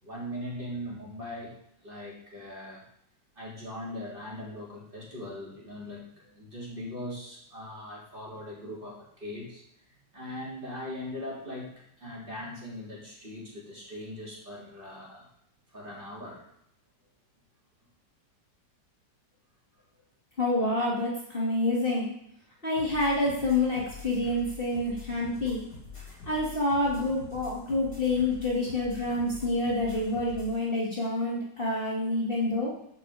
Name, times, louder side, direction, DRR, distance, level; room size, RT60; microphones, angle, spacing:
voice 1, 0.0-1.5 1.8-2.8 3.3-15.3 15.7-16.5, left 1 dB, 30° right, -5 dB, 3.3 m, -40 dB
voice 2, 20.4-22.1 22.6-25.6 26.3-32.7, left 2 dB, 30° left, -5 dB, 2.5 m, -28 dB
sound 1, 22.8-30.6, left 5 dB, 50° left, 5.5 m, -45 dB
13.5 x 5.8 x 5.0 m, 0.74 s
omnidirectional pair, 1.9 m